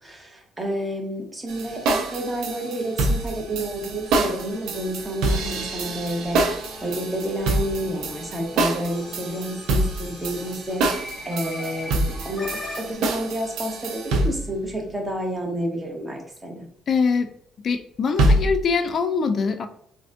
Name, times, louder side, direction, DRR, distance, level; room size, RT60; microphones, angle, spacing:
voice 1, 0.0-10.9 11.2-16.7, equal, 15° right, 2 dB, 0.8 m, -30 dB
sound 1, 1.5-14.5 18.2-18.6, right 2 dB, 80° right, 0.4 m, -25 dB
sound 2, 3.4-12.9, left 2 dB, 10° left, 1.1 m, -40 dB
voice 2, 16.9-17.3 17.6-19.7, left 5 dB, 45° left, 7 dB, 0.3 m, -23 dB
3.3 x 2.5 x 2.4 m, 0.69 s
cardioid pair, 115°, 0 cm